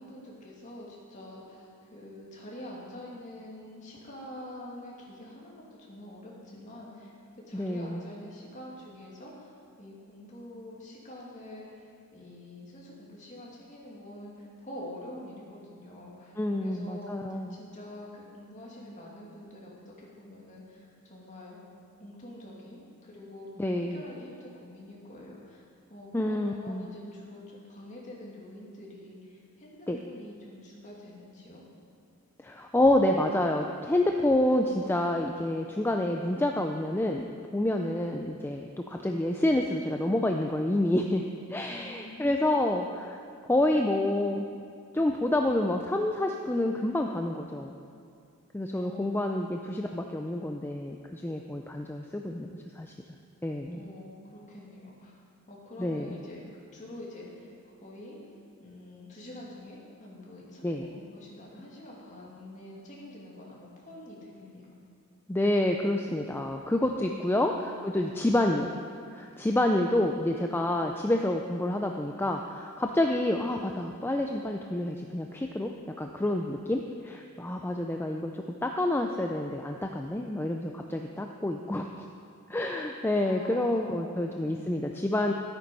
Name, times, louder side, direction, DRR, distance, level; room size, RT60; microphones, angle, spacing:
voice 1, 0.0-7.1 7.5-9.5 9.8-11.9 12.1-21.6 22.0-23.5 23.8-25.6 25.9-31.6 41.7-42.6 48.7-49.5 53.7-55.2 55.5-57.5 57.8-58.2 58.6-64.6 83.2-84.2, left 1 dB, 35° left, -4 dB, 2.6 m, -46 dB
voice 2, 7.5-8.0 16.4-17.5 23.6-24.0 26.1-26.9 29.9-30.0 32.4-37.3 37.5-41.2 41.5-43.2 43.5-44.4 44.9-47.8 48.5-52.9 53.4-53.8 55.8-56.1 60.6-60.9 65.3-68.7 69.1-75.7 76.0-82.1 82.5-85.3, left 1 dB, 10° left, 3 dB, 0.4 m, -28 dB
13.0 x 9.0 x 5.4 m, 2.3 s
head